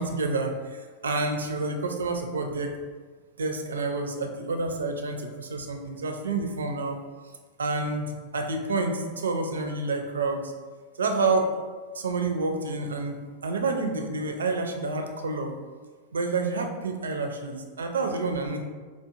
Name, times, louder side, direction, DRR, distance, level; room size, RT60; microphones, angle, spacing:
voice 1, 0.0-2.7 3.4-7.0 7.6-10.5 11.0-11.5 11.9-15.5 16.1-18.6, right 3 dB, 70° right, 4 dB, 0.4 m, -29 dB
4.4 x 2.5 x 2.4 m, 1.4 s
figure-of-eight pair, 90°, 0 cm